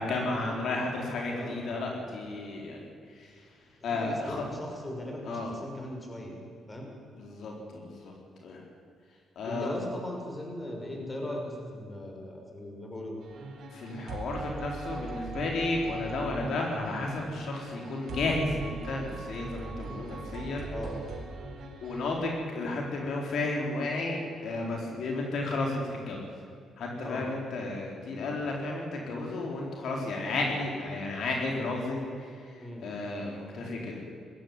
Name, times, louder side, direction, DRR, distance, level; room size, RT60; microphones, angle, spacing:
voice 1, 0.0-3.4 3.8-4.4 5.2-5.5 7.1-8.1 8.4-8.6 9.4-9.8 13.7-20.7 21.8-26.2 26.8-32.5 32.8-34.0, left 2 dB, 65° left, 0 dB, 4.2 m, -33 dB
voice 2, 3.8-6.4 6.7-6.9 9.5-13.2 16.3-16.5 20.7-21.0 27.0-27.3 32.6-32.8, left 1 dB, 20° left, 1 dB, 5.8 m, -39 dB
sound 1, 13.2-22.4, right 3 dB, 65° right, 4.4 m, -40 dB
20.5 x 14.5 x 9.6 m, 2.3 s
cardioid pair, 90°, 0 cm